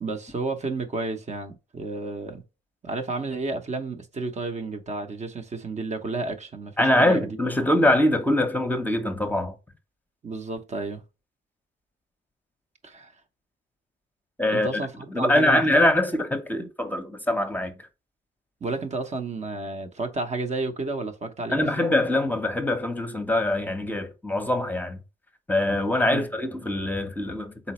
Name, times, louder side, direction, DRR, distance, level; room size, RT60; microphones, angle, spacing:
voice 1, 0.0-2.4 2.8-7.3 10.2-11.0 12.8-13.1 14.5-15.9 18.6-21.9 26.1-26.2, right 3 dB, 35° right, 0.8 m, -31 dB
voice 2, 6.8-9.5 14.4-14.7 15.1-17.8 21.5-25.0 25.5-27.7, left 1 dB, 10° left, 0.9 m, -23 dB
4.2 x 3.8 x 3.0 m
cardioid pair, 90°, 20 cm